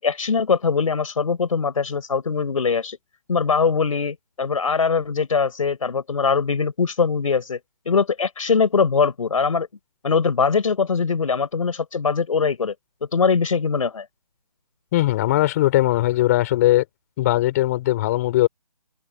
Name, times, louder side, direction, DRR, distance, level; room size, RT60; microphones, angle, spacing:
voice 1, 0.0-3.0 3.3-7.6 7.9-9.7 10.0-12.7 13.1-14.0, left 5 dB, 55° left, 4.7 m, -21 dB
voice 2, 14.9-16.8 17.2-18.5, left 15 dB, 25° left, 4.8 m, -19 dB
figure-of-eight pair, 150°, 21 cm